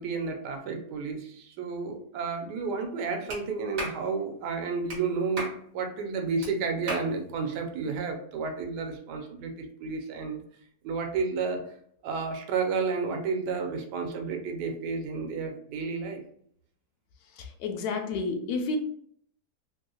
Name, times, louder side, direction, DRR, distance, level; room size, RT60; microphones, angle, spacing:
voice 1, 0.0-10.4 10.8-11.7 12.0-16.2, right 4 dB, 90° right, 4 dB, 1.2 m, -31 dB
Clapping, 3.3-3.4 3.8-4.0 4.9-5.0 5.4-5.6 6.4-6.5 6.9-7.1, right 1 dB, 45° right, 1.3 m, -34 dB
voice 2, 17.6-18.8, left 3 dB, 80° left, 4 dB, 1.1 m, -30 dB
3.2 x 2.6 x 2.7 m, 0.63 s
omnidirectional pair, 1.7 m